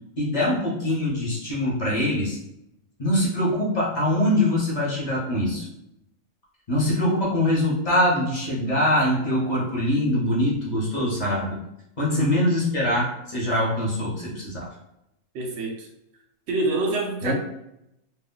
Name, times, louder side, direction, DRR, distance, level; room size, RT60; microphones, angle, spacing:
voice 1, 0.2-2.4 3.0-5.7 6.7-11.6 12.0-14.7 17.2-17.3, left 1 dB, 35° left, -6 dB, 0.8 m, -23 dB
voice 2, 12.1-12.4 15.3-15.9 16.5-17.3, right 2 dB, 60° right, 0 dB, 0.8 m, -26 dB
2.4 x 2.2 x 3.6 m, 0.82 s
omnidirectional pair, 1.5 m